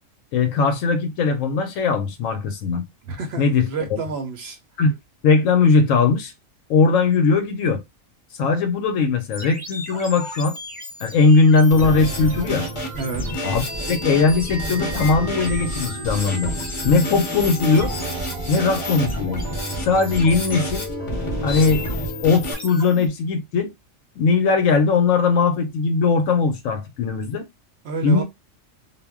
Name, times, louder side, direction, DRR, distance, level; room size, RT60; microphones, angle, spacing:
voice 1, 0.3-2.9 3.4-4.0 4.8-4.9 5.2-6.3 6.7-7.8 8.4-10.6 11.0-12.7 13.4-13.6 13.9-16.5 16.8-17.9 18.5-19.4 19.8-20.8 21.4-21.9 22.2-23.7 24.2-27.5 28.0-28.2, left 4 dB, 75° left, 0.9 m, -19 dB
voice 2, 3.0-4.6 13.0-13.3 27.8-28.2, right 4 dB, 65° right, 0.7 m, -29 dB
sound 1, 9.3-23.1, left 2 dB, 5° left, 0.9 m, -35 dB
Drum kit, 11.7-22.5, right 1 dB, 30° left, 0.6 m, -29 dB
2.4 x 2.1 x 3.4 m
omnidirectional pair, 1.4 m